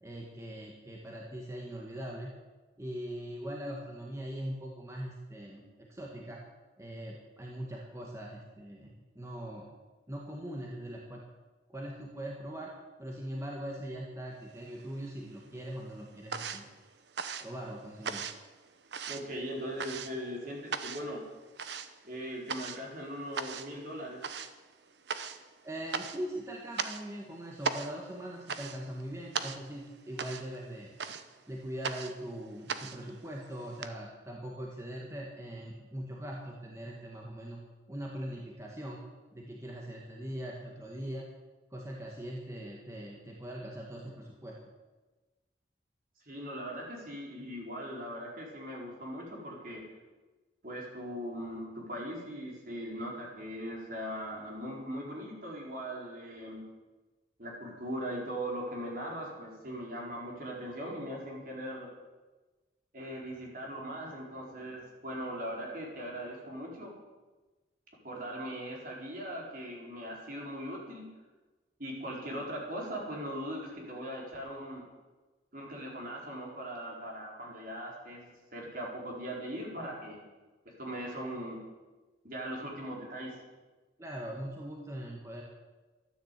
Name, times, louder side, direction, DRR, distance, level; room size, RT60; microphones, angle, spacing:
voice 1, 0.0-2.3 2.8-6.4 6.8-9.7 10.1-11.2 11.7-12.7 13.0-16.7 17.4-18.2 25.6-31.0 31.5-37.6 37.9-39.0 39.3-41.3 41.7-44.5 84.0-85.4, right 1 dB, 15° right, -2 dB, 1.8 m, -41 dB
sound 1, 14.5-15.3 15.6-33.9, right 5 dB, 80° right, 0.9 m, -39 dB
voice 2, 19.1-21.2 22.0-24.2 46.2-49.8 50.6-56.6 57.4-61.9 62.9-66.9 68.0-71.1 71.8-74.8 75.5-80.2 80.8-81.6 82.2-83.3, equal, 50° right, -2 dB, 4.4 m, -40 dB
13.5 x 10.0 x 8.3 m, 1.2 s
head